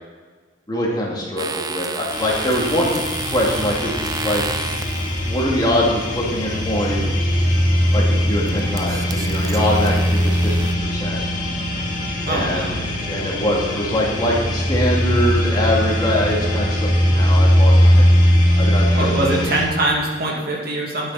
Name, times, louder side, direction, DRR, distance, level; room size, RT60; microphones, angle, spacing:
voice 1, 0.7-2.9 3.2-3.9 4.2-4.4 5.3-7.1 7.9-11.2 12.3-12.7 13.0-19.3, equal, 20° left, -3 dB, 2.3 m, -23 dB
sound 1, 1.4-5.4 7.4-7.7 8.2-10.7, right 4 dB, 20° right, 0.5 m, -31 dB
sound 2, 2.1-19.6, equal, 40° left, 2.3 m, -20 dB
voice 2, 12.3-12.8 18.9-21.1, right 1 dB, 50° right, -2 dB, 2.3 m, -23 dB
12.0 x 9.3 x 4.2 m, 1.5 s
head